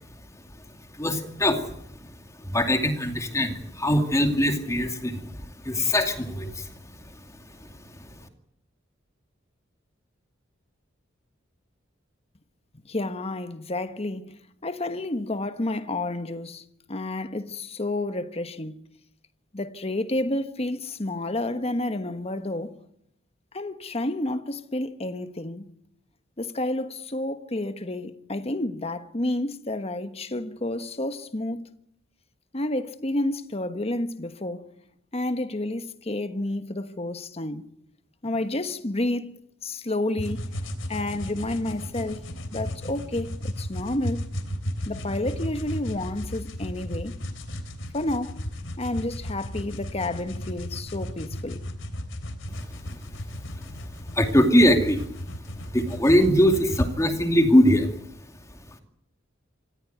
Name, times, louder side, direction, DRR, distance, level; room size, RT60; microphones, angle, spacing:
voice 1, 1.0-1.6 2.5-5.4 5.6-6.7 54.1-55.1 55.7-57.9, equal, 15° left, 2.4 m, -21 dB
voice 2, 12.8-14.3 14.6-18.8 19.5-22.8 23.5-25.7 26.4-31.6 32.5-34.7 35.1-37.7 38.2-40.4 40.9-42.2 42.5-44.2 44.9-47.2 47.9-48.4 48.8-51.6, left 1 dB, 30° left, 1.3 m, -30 dB
sound 1, 40.2-56.9, equal, 70° left, 3.3 m, -34 dB
26.5 x 15.0 x 9.4 m
head